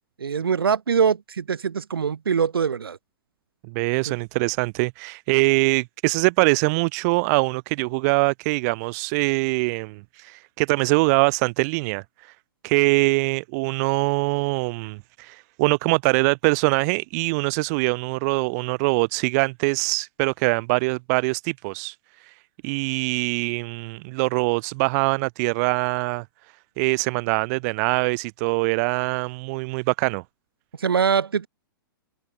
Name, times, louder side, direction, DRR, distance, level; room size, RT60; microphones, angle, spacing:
voice 1, 0.2-3.0 30.8-31.5, right 6 dB, 75° right, 4.8 m, -23 dB
voice 2, 3.7-12.3 12.6-22.3 22.6-26.2 26.8-30.2, right 29 dB, 45° right, 4.5 m, -23 dB
hypercardioid pair, 115°, 12 cm